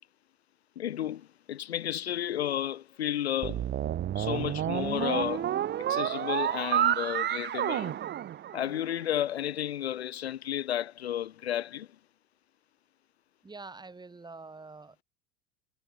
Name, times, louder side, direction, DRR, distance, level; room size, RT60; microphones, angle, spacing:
voice 1, 0.8-3.7 4.2-5.5 5.9-8.0 8.5-11.9, left 11 dB, 70° left, 1.0 m, -32 dB
sound 1, 3.4-8.9, right 11 dB, 30° right, 2.3 m, -30 dB
voice 2, 13.4-15.0, right 3 dB, 10° right, 6.4 m, -46 dB
figure-of-eight pair, 80°, 33 cm